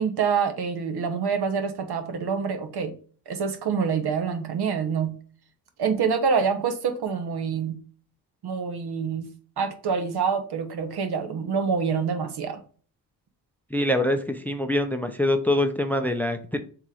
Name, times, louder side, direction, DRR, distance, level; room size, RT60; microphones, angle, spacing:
voice 1, 0.0-3.0 3.3-5.2 5.8-7.8 8.4-12.6, right 6 dB, 65° right, 7 dB, 0.9 m, -26 dB
voice 2, 13.7-16.6, left 1 dB, 5° left, 8 dB, 0.4 m, -24 dB
3.6 x 3.1 x 4.7 m, 0.42 s
cardioid pair, 80°, 41 cm